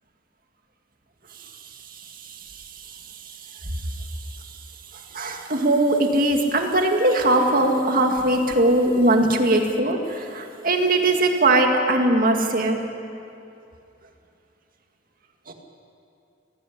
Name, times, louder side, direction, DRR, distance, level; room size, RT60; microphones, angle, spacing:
voice 1, 1.9-4.6 4.9-12.8 15.5-15.6, right 1 dB, 50° right, 3 dB, 2.1 m, -21 dB
18.0 x 15.5 x 10.0 m, 2.7 s
head